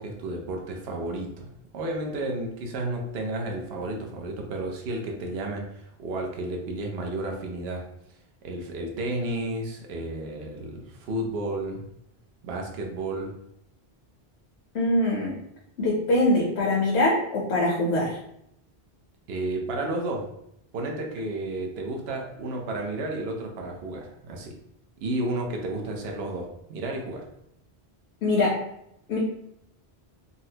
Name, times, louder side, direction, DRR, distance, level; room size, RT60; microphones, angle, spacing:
voice 1, 0.0-7.9 8.4-11.8 12.4-13.3 19.3-20.3 20.7-24.6 25.0-27.2, right 2 dB, 75° right, 1 dB, 0.9 m, -32 dB
voice 2, 14.7-15.3 15.8-18.2 28.2-28.6 29.1-29.2, left 1 dB, 75° left, -3 dB, 0.9 m, -23 dB
4.0 x 2.0 x 2.7 m, 0.76 s
omnidirectional pair, 1.1 m